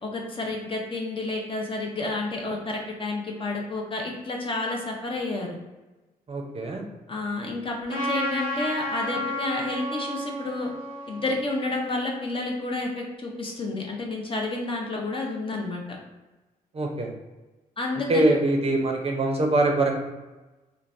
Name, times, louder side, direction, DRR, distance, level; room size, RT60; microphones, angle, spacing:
voice 1, 0.0-5.6 7.1-10.7 11.1-15.8 17.8-18.4, left 2 dB, 35° left, 0 dB, 0.7 m, -30 dB
voice 2, 6.3-6.8 16.7-17.1 18.1-20.0, right 2 dB, 40° right, 1 dB, 0.5 m, -23 dB
Trumpet, 7.9-12.6, equal, 65° left, 0.9 m, -32 dB
3.1 x 2.1 x 2.5 m, 1.1 s
cardioid pair, 65°, 16 cm